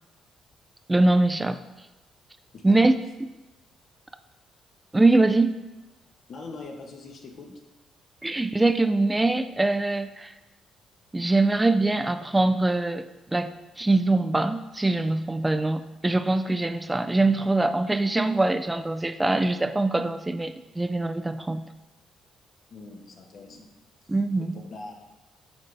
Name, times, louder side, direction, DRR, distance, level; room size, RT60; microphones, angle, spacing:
voice 1, 0.9-1.6 2.6-3.3 4.9-5.6 8.2-10.3 11.1-13.5 13.8-21.6 24.1-24.6, right 2 dB, 15° right, 9 dB, 0.3 m, -23 dB
voice 2, 6.3-7.5 22.7-23.7 24.7-25.0, left 3 dB, 60° left, 2 dB, 1.1 m, -42 dB
8.2 x 4.0 x 3.3 m, 1.1 s
cardioid pair, 90°, 0 cm